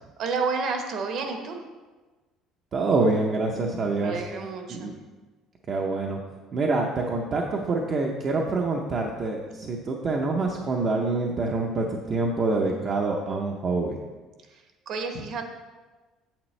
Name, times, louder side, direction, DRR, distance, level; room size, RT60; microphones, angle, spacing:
voice 1, 0.2-1.6 4.0-4.9 14.5-15.4, right 4 dB, 50° right, 4 dB, 1.0 m, -30 dB
voice 2, 2.7-4.2 4.7-4.9 5.7-6.2 6.5-14.0, right 3 dB, 30° right, 0 dB, 0.6 m, -26 dB
8.7 x 7.9 x 3.2 m, 1.2 s
cardioid pair, 165°, 0 cm